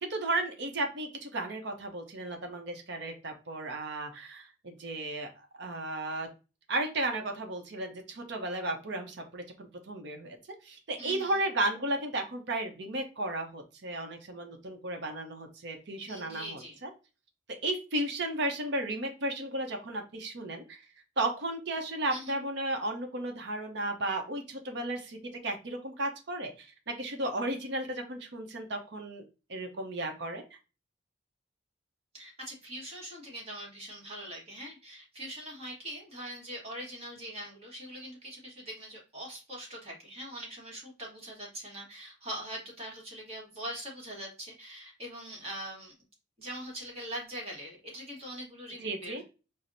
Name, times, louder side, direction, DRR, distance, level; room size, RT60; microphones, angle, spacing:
voice 1, 0.0-5.3 5.6-6.3 6.7-10.4 10.6-16.9 17.6-20.8 21.2-25.2 25.4-29.2 29.5-30.4 48.8-49.2, right 2 dB, 65° right, 4 dB, 0.7 m, -34 dB
voice 2, 11.0-11.4 16.0-16.8 22.1-22.3 32.1-45.9 46.4-49.2, equal, 35° right, -2 dB, 1.2 m, -42 dB
5.8 x 2.0 x 2.6 m, 0.31 s
head